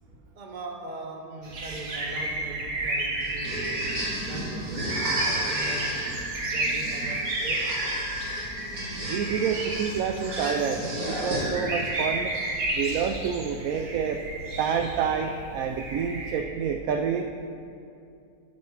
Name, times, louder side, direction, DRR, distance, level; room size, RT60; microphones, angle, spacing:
voice 1, 0.0-6.2 6.4-7.7, right 2 dB, 35° right, 1 dB, 1.0 m, -40 dB
sound 1, 1.4-16.4, right 2 dB, 85° right, 1.9 m, -33 dB
sound 2, 3.2-11.8, right 1 dB, 55° right, 2.7 m, -32 dB
voice 2, 9.0-12.3 12.7-14.2 14.6-17.3, right 7 dB, 70° right, 5 dB, 0.9 m, -28 dB
12.5 x 5.3 x 5.8 m, 2.5 s
omnidirectional pair, 1.8 m